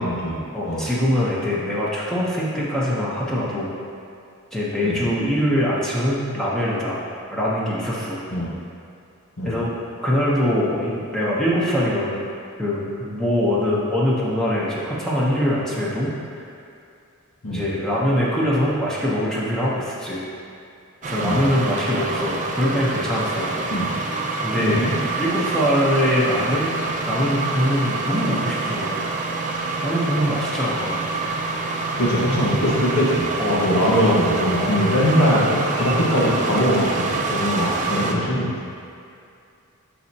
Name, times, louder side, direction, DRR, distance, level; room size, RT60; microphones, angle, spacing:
voice 1, 0.0-0.4 0.7-0.8 4.8-5.0 8.3-8.5 9.4-9.5 17.4-17.6 21.2-21.4 23.7-23.8 24.6-24.9 32.0-38.5, equal, 80° left, -5 dB, 1.5 m, -21 dB
voice 2, 0.5-3.7 4.5-7.0 7.3-8.2 9.4-9.7 10.0-12.2 12.6-16.1 17.5-20.2 21.1-23.5 24.4-24.8 25.2-26.8 27.1-29.0 29.8-31.0 33.4-33.7, equal, 5° left, -8 dB, 0.9 m, -23 dB
sound 1, 21.0-38.1, right 3 dB, 35° right, 0.6 m, -26 dB
11.0 x 4.2 x 2.8 m, 2.5 s
head